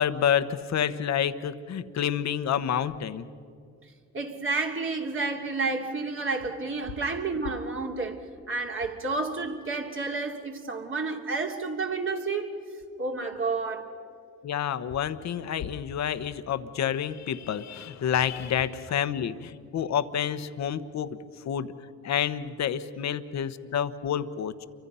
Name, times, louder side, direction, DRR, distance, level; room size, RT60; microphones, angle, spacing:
voice 1, 0.0-3.2 14.4-21.2 21.4-21.7 22.0-24.6, left 9 dB, 65° left, 1.2 m, -28 dB
voice 2, 3.8-12.5 13.0-13.9, right 3 dB, 45° right, 3.0 m, -30 dB
29.0 x 24.5 x 5.6 m
cardioid pair, 90°, 30 cm